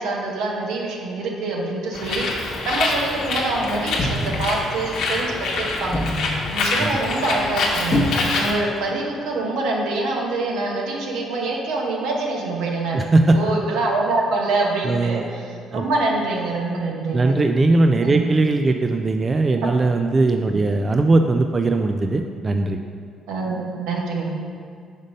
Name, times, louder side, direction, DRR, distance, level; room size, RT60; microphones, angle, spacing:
voice 1, 0.0-6.0 6.5-8.0 8.4-13.1 13.3-17.4 18.0-18.3 23.3-24.3, right 2 dB, 85° right, -1 dB, 1.0 m, -25 dB
Bird, 1.9-8.5, left 3 dB, 75° left, 0.9 m, -25 dB
sound 1, 3.9-4.6 5.9-6.3 7.9-8.5 8.8-8.9, left 2 dB, 35° left, 0.8 m, -24 dB
voice 2, 12.9-13.4 14.8-15.3 15.7-15.8 17.1-22.8, right 2 dB, 30° right, 6 dB, 0.3 m, -19 dB
5.2 x 3.9 x 5.3 m, 2.1 s
supercardioid pair, 80°, 0 cm